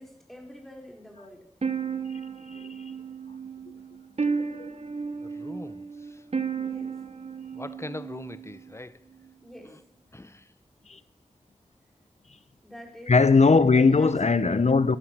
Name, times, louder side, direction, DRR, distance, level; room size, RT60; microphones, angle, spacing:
voice 1, 0.0-1.4 6.5-7.0 9.4-9.8 12.6-13.1 13.7-14.1, equal, ahead, 4.6 m, -46 dB
sound 1, 1.6-8.7, right 5 dB, 55° right, 0.9 m, -33 dB
voice 2, 2.5-2.8 4.2-4.7 10.9-11.0 13.1-15.0, left 4 dB, 60° left, 0.8 m, -20 dB
voice 3, 5.2-6.2 7.5-9.0 10.1-10.5, left 2 dB, 20° left, 0.7 m, -41 dB
16.5 x 11.5 x 6.2 m
wide cardioid pair, 50°, 13 cm